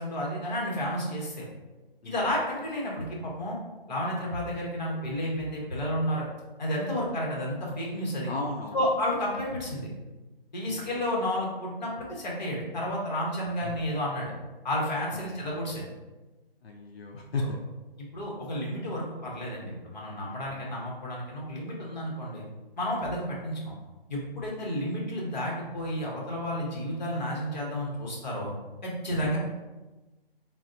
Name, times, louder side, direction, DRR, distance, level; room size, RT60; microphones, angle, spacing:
voice 1, 0.0-1.4 2.0-3.6 3.9-6.2 6.6-8.3 8.7-9.9 10.5-14.3 14.6-15.8 18.0-22.4 22.8-23.7 24.1-28.5 28.8-29.4, equal, 45° left, -3 dB, 0.9 m, -31 dB
voice 2, 8.3-8.8 10.7-11.0 13.6-13.7 15.1-15.4 16.6-17.6 20.5-20.7 29.1-29.3, left 2 dB, 85° left, 0 dB, 0.6 m, -35 dB
4.0 x 2.0 x 2.5 m, 1.2 s
hypercardioid pair, 165°, 30 cm